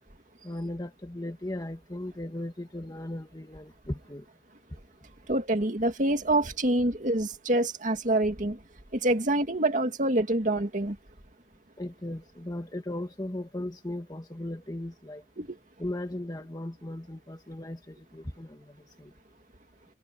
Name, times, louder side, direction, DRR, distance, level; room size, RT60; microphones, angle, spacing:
voice 1, 0.4-4.3 11.8-15.2 15.8-19.1, left 1 dB, 20° left, 1.4 m, -37 dB
voice 2, 5.3-8.6 8.9-11.0 15.4-15.6, right 1 dB, 45° right, 2.2 m, -26 dB
head